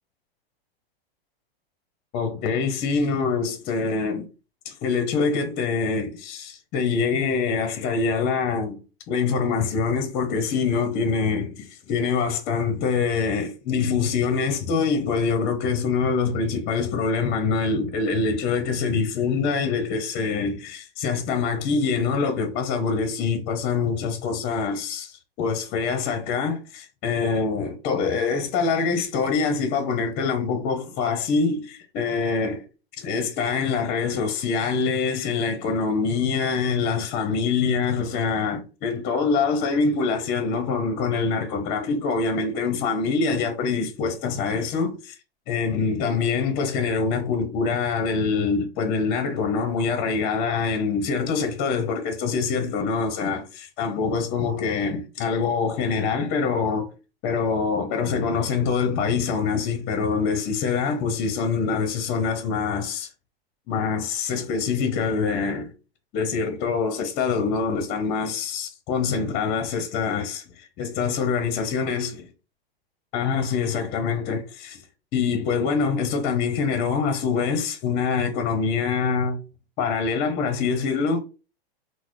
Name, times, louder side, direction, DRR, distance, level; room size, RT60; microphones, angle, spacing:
voice 1, 2.1-4.3 4.6-8.8 9.1-32.6 33.0-45.1 45.5-56.9 57.2-63.1 63.7-65.7 66.1-70.4 70.8-72.3 73.1-74.8 75.1-79.4 79.8-81.2, left 5 dB, 30° left, 0.6 m, -25 dB
3.9 x 2.0 x 3.0 m
hypercardioid pair, 125°, 31 cm